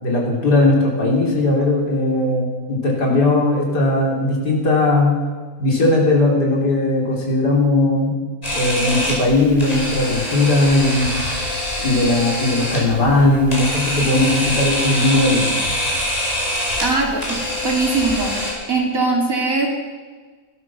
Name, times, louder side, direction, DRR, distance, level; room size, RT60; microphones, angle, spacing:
voice 1, 0.0-5.2 5.6-8.2 8.5-11.2 11.8-15.5, left 2 dB, 75° left, -2 dB, 3.9 m, -18 dB
Camera, 8.4-18.5, left 1 dB, 20° left, 4.9 m, -24 dB
voice 2, 16.8-18.3 18.7-19.7, right 3 dB, 50° right, 0 dB, 3.0 m, -21 dB
16.5 x 12.5 x 6.1 m, 1.4 s
omnidirectional pair, 1.8 m